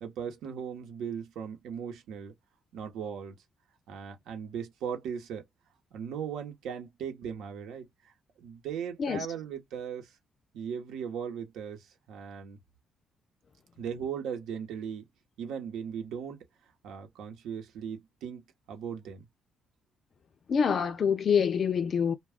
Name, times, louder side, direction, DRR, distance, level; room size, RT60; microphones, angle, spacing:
voice 1, 0.0-2.3 2.7-3.4 3.9-5.4 5.9-8.1 8.4-10.1 10.5-12.6 13.8-15.0 15.4-16.4 16.8-19.3, right 7 dB, 85° right, 1.0 m, -38 dB
voice 2, 20.5-22.1, left 7 dB, 50° left, 0.3 m, -26 dB
2.3 x 2.2 x 3.5 m
cardioid pair, 90°, 0 cm